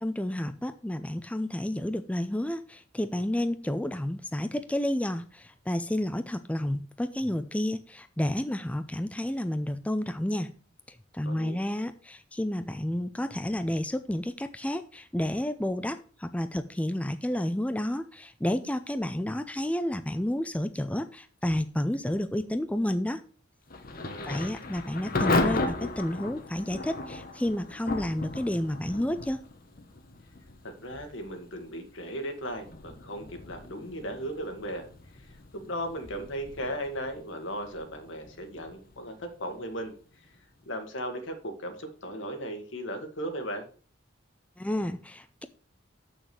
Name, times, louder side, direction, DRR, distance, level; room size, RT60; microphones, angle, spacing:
voice 1, 0.0-10.5 10.9-23.2 24.2-29.5 44.6-45.5, left 1 dB, 5° left, 9 dB, 0.4 m, -30 dB
voice 2, 11.2-11.6 24.0-24.4 30.6-34.9 35.1-40.3 40.7-43.7, equal, 80° left, 5 dB, 1.8 m, -37 dB
Thunder / Rain, 23.7-40.4, left 2 dB, 50° left, 1.1 m, -36 dB
6.9 x 6.3 x 6.0 m, 0.41 s
head